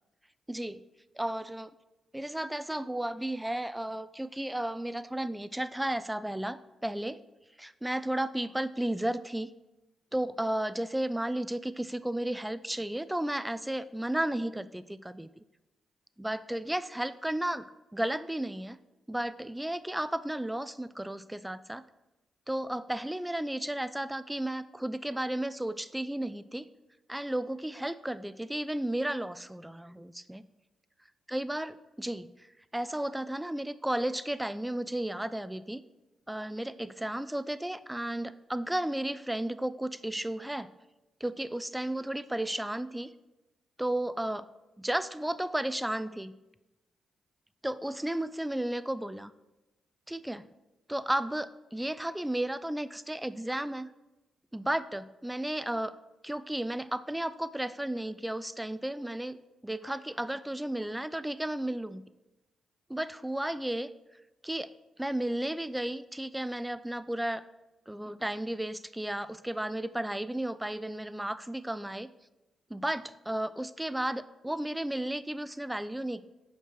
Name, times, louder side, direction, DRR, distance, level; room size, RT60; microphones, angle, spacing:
voice 1, 0.5-0.8 1.2-1.7 2.1-7.2 7.6-9.5 10.1-15.3 16.2-17.6 17.9-18.8 19.1-21.8 22.5-26.7 27.1-30.4 31.3-35.8 36.3-40.7 41.2-43.1 43.8-44.5 44.8-46.3 47.6-49.3 50.1-50.5 50.9-53.9 54.5-55.9 56.2-59.4 59.6-62.0 62.9-63.9 64.4-64.7 65.0-67.4 67.9-72.1 72.7-76.2, right 1 dB, 10° right, 14 dB, 0.4 m, -33 dB
5.6 x 4.5 x 5.9 m, 1.0 s
hypercardioid pair, 40°, 0 cm